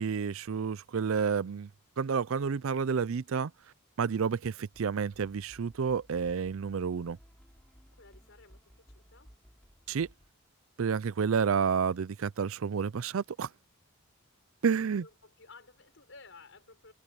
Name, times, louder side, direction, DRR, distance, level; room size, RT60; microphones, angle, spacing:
voice 1, 0.0-1.7 2.0-3.5 4.0-7.2 9.9-10.1 10.8-13.5 14.6-15.0, right 6 dB, 65° right, 0.4 m, -30 dB
sound 1, 4.7-10.3, equal, 5° left, 7.4 m, -59 dB
voice 2, 7.9-9.3 15.0-16.9, left 3 dB, 60° left, 6.6 m, -55 dB
head